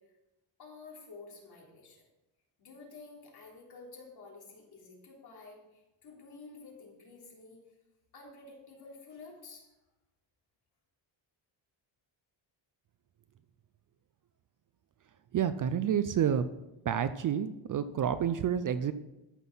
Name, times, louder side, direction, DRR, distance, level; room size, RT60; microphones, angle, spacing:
voice 1, 0.6-2.0 2.6-7.6 8.1-9.7, left 3 dB, 50° left, -2 dB, 3.2 m, -51 dB
voice 2, 15.3-16.4 16.9-18.9, right 9 dB, 45° right, 12 dB, 0.4 m, -29 dB
14.0 x 6.2 x 5.6 m, 0.97 s
wide cardioid pair, 175°, 47 cm